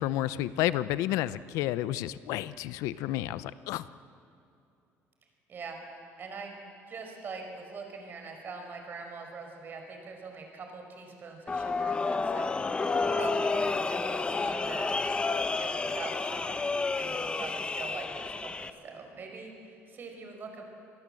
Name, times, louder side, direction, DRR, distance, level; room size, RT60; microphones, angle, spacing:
voice 1, 0.0-3.8, left 14 dB, 90° left, 16 dB, 0.7 m, -31 dB
voice 2, 6.2-6.6 6.9-14.9 15.5-16.7 17.0-20.6, right 4 dB, 40° right, 3 dB, 4.9 m, -43 dB
sound 1, 11.5-18.7, left 3 dB, 20° left, 0.9 m, -30 dB
26.5 x 19.0 x 7.7 m, 2.7 s
cardioid pair, 135°, 5 cm